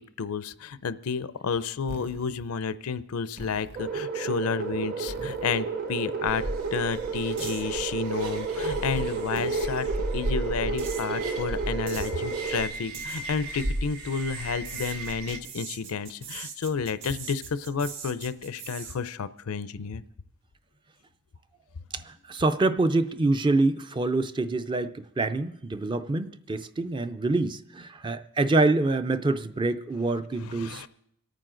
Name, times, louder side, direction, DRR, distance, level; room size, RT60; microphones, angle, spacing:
voice 1, 0.2-6.4 6.7-9.9 10.1-20.0 22.3-22.4 30.4-30.9, left 5 dB, 80° left, 15 dB, 0.5 m, -31 dB
sound 1, 1.9-2.4 3.4-3.9 5.1-5.7 6.9-7.0 7.4-7.6 9.0-9.1 9.4-9.5 10.8-11.1 11.9-12.1 12.9-13.2 14.6-19.0, right 4 dB, 55° right, 1.5 m, -41 dB
sound 2, 3.7-12.6, right 5 dB, 40° right, 0.8 m, -32 dB
sound 3, 6.3-15.4, right 1 dB, 80° right, 1.3 m, -34 dB
voice 2, 21.9-30.9, right 2 dB, 20° right, 11 dB, 0.4 m, -26 dB
26.5 x 9.1 x 3.8 m, 0.74 s
head